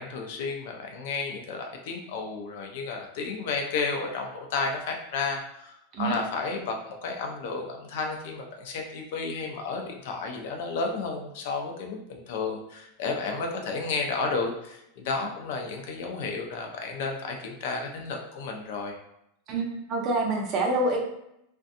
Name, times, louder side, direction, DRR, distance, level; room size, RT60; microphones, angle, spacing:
voice 1, 0.0-19.0, left 4 dB, 65° left, 2 dB, 0.5 m, -32 dB
voice 2, 19.5-21.0, right 2 dB, 40° right, 0 dB, 0.6 m, -26 dB
2.6 x 2.2 x 2.5 m, 0.80 s
supercardioid pair, 140°, 0 cm